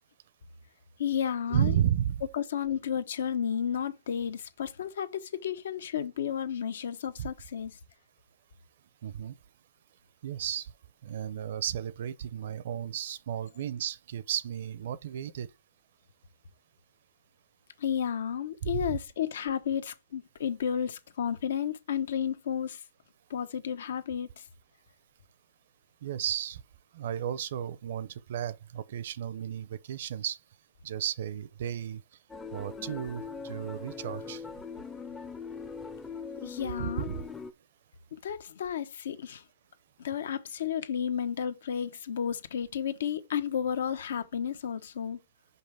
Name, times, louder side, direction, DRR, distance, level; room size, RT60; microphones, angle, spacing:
voice 1, 1.0-1.7 2.3-7.8 17.8-22.8 23.3-24.4 36.4-37.1 38.2-39.4 40.0-45.2, left 8 dB, 80° left, 1.1 m, -32 dB
voice 2, 1.5-2.2 7.2-7.3 9.0-9.4 10.2-10.7 11.0-15.5 18.6-19.0 26.0-26.6 26.9-30.4 30.8-32.0 32.5-34.4 36.8-37.2, right 10 dB, 60° right, 0.6 m, -33 dB
sound 1, 32.3-37.5, left 5 dB, 10° left, 0.5 m, -41 dB
5.7 x 5.4 x 3.4 m
hypercardioid pair, 165°, 0 cm